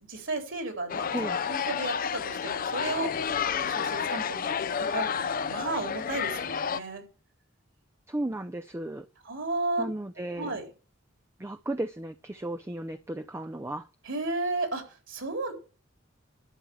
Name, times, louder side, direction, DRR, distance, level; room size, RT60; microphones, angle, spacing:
voice 1, 0.1-1.1 1.5-7.0 9.3-9.8 10.4-10.6 14.1-15.5, right 2 dB, 65° right, 6 dB, 3.9 m, -33 dB
sound 1, 0.9-6.8, left 7 dB, 45° left, 0.5 m, -30 dB
voice 2, 8.1-9.1 9.8-10.6 11.4-13.9, right 1 dB, 15° right, 8 dB, 0.5 m, -34 dB
11.5 x 6.2 x 8.6 m, 0.36 s
head